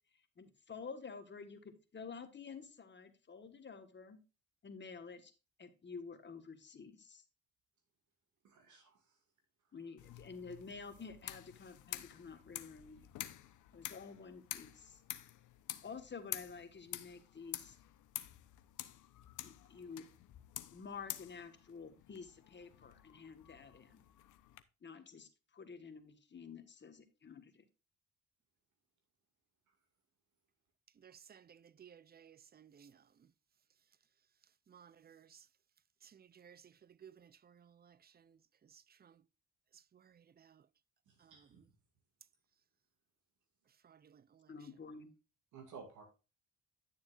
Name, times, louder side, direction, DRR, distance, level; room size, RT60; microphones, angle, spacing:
voice 1, 0.4-4.2 4.6-5.3 5.6-7.2 9.7-13.1 13.7-15.0 15.8-17.8 19.4-20.1 20.7-24.0 24.8-27.6 44.5-45.1, left 5 dB, 35° left, 1.6 m, -50 dB
voice 2, 8.4-9.0 41.1-41.6 45.5-46.0, right 5 dB, 80° right, 2.2 m, -54 dB
sound 1, 10.0-24.6, left 13 dB, 80° left, 0.9 m, -49 dB
voice 3, 30.9-33.3 34.7-35.5 36.0-39.2 39.7-40.7 41.2-41.7 43.7-44.8, right 8 dB, 30° right, 0.5 m, -61 dB
11.0 x 7.1 x 2.5 m
cardioid pair, 90°, 30 cm